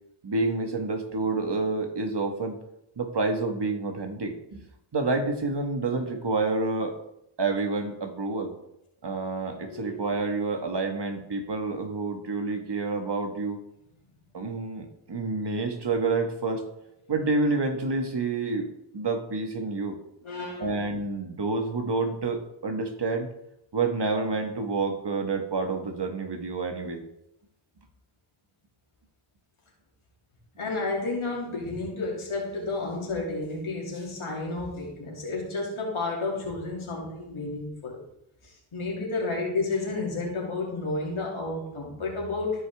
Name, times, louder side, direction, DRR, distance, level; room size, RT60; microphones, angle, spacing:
voice 1, 0.2-2.6 3.0-4.6 4.9-7.0 7.4-8.5 9.0-13.6 14.3-16.6 17.1-20.0 20.6-23.3 23.7-27.0, right 3 dB, 55° right, 4 dB, 1.6 m, -28 dB
voice 2, 20.2-20.8 30.6-38.0 38.4-42.6, left 3 dB, 90° left, -3 dB, 2.8 m, -31 dB
14.5 x 5.1 x 3.5 m, 0.81 s
cardioid pair, 50°, 48 cm